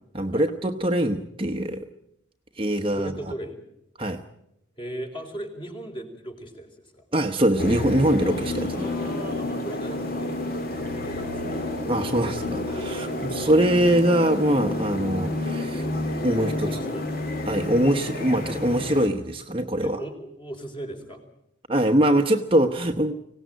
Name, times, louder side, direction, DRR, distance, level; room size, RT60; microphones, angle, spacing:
voice 1, 0.1-1.9 2.6-3.1 4.0-4.2 7.1-8.9 11.9-15.9 16.2-16.7 17.5-20.0 21.7-23.1, right 1 dB, 25° right, 5 dB, 1.0 m, -23 dB
voice 2, 2.9-3.6 4.8-7.0 8.7-11.6 12.9-13.3 16.3-17.1 19.8-21.2, right 1 dB, 25° left, 4 dB, 4.3 m, -38 dB
sound 1, 7.6-19.1, left 2 dB, 45° left, 3.1 m, -30 dB
25.0 x 18.0 x 9.2 m, 0.82 s
head